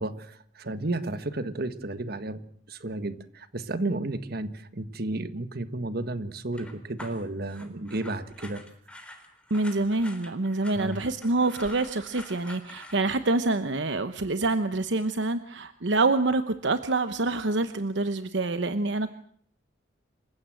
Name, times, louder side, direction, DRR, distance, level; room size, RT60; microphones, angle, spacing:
voice 1, 0.0-2.4 2.7-8.6 10.7-11.0, right 2 dB, 55° right, 11 dB, 1.6 m, -32 dB
sound 1, 6.5-13.0, left 1 dB, 5° left, 3.7 m, -46 dB
voice 2, 9.5-19.1, right 2 dB, 70° right, 11 dB, 1.0 m, -26 dB
27.5 x 15.5 x 7.7 m, 0.63 s
head